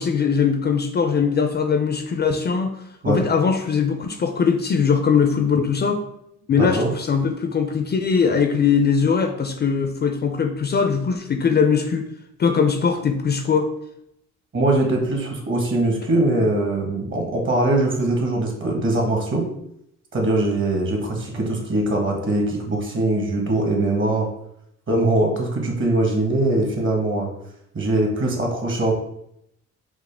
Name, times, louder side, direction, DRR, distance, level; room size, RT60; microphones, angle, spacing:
voice 1, 0.0-2.7 3.1-6.0 6.5-12.1 12.4-13.7, left 6 dB, 35° left, 6 dB, 0.4 m, -20 dB
voice 2, 6.6-6.9 14.5-19.5 20.1-24.3 24.9-27.3 27.7-28.9, right 2 dB, 40° right, 1 dB, 1.1 m, -22 dB
4.9 x 2.1 x 3.3 m, 0.76 s
cardioid pair, 90°, 30 cm